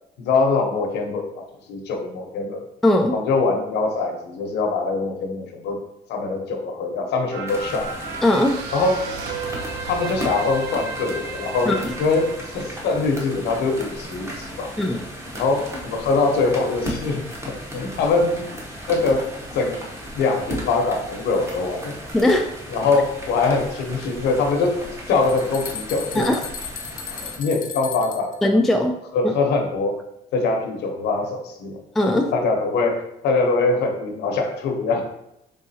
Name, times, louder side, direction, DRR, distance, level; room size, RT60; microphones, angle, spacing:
voice 1, 0.2-2.6 3.1-5.8 6.1-7.9 8.7-9.0 9.9-14.7 15.3-17.2 17.7-18.5 18.9-19.3 19.5-19.8 20.1-21.9 22.7-24.8 25.1-26.4 27.1-28.3 29.1-29.9 30.3-31.8 32.1-35.0, left 3 dB, 80° left, 3 dB, 0.8 m, -23 dB
voice 2, 2.8-3.2 8.2-8.6 11.7-11.9 14.8-15.1 22.1-22.5 26.1-26.4 28.4-29.0 29.2-29.3 32.0-32.3, left 1 dB, ahead, 3 dB, 0.3 m, -19 dB
sound 1, 7.3-13.9 14.4-14.5, right 4 dB, 85° right, 0.5 m, -34 dB
sound 2, 7.5-27.4, equal, 15° right, 1.0 m, -36 dB
sound 3, 24.8-28.4, left 7 dB, 55° left, 0.6 m, -35 dB
4.1 x 3.6 x 2.7 m, 0.83 s
cardioid pair, 110°, 17 cm